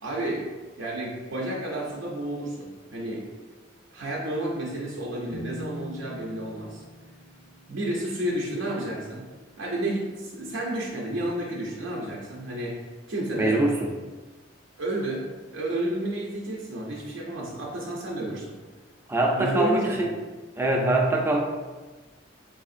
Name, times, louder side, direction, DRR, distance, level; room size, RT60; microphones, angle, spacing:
voice 1, 0.0-0.5 0.8-3.2 3.9-6.8 7.7-9.2 9.6-13.6 14.8-15.2 15.5-18.6 19.4-20.0, right 1 dB, 85° right, -3 dB, 0.6 m, -31 dB
sound 1, 5.3-10.9, left 1 dB, 75° left, 0.6 m, -45 dB
voice 2, 13.4-13.7 19.1-20.1 20.6-21.4, right 1 dB, 10° right, 0 dB, 0.4 m, -23 dB
3.7 x 3.4 x 2.5 m, 1.3 s
head